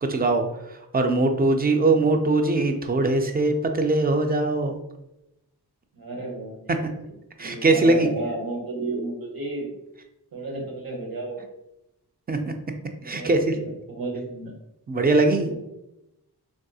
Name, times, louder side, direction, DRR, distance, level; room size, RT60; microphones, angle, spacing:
voice 1, 0.1-0.5 0.9-4.8 7.4-8.1 12.3-12.4 13.1-13.4 14.9-15.5, right 2 dB, 25° right, 6 dB, 0.3 m, -21 dB
voice 2, 5.9-9.7 10.3-11.4 13.0-14.5 15.4-15.5, right 2 dB, 60° right, 0 dB, 0.9 m, -33 dB
3.5 x 2.6 x 2.3 m, 0.89 s
wide cardioid pair, 105°, 40 cm